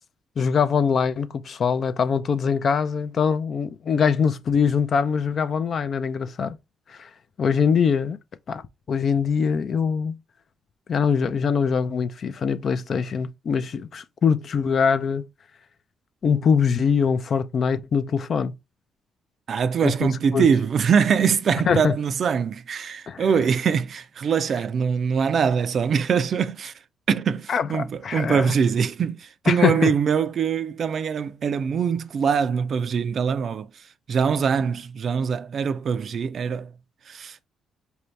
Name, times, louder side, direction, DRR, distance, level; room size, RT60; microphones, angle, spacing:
voice 1, 0.4-6.6 6.9-7.1 7.4-8.2 8.5-8.6 8.9-10.2 10.9-15.3 16.2-18.6 19.8-20.5 21.7-21.9 23.1-23.2 27.5-28.6 29.5-29.9, left 6 dB, 50° left, 0.5 m, -23 dB
voice 2, 19.5-26.7 27.1-33.7 34.1-36.7 37.1-37.5, right 6 dB, 55° right, 0.4 m, -23 dB
4.6 x 2.7 x 3.2 m
cardioid pair, 90°, 0 cm